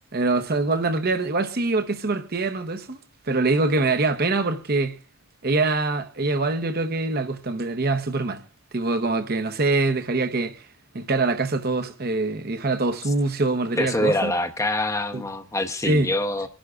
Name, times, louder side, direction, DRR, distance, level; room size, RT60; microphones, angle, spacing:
voice 1, 0.1-3.0 3.3-5.0 5.4-8.4 8.7-10.6 10.9-14.3 15.1-15.2 15.8-16.1, right 3 dB, 45° right, 0.8 m, -24 dB
voice 2, 13.8-16.5, left 1 dB, 15° left, 0.8 m, -25 dB
25.5 x 11.5 x 2.4 m
head